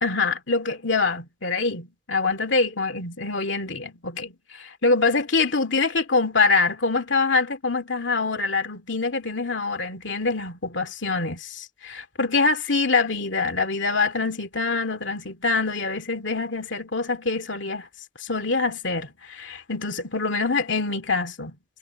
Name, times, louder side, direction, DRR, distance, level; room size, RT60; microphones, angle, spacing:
voice 1, 0.0-17.9 18.2-21.5, left 3 dB, 70° left, 2.5 m, -25 dB
head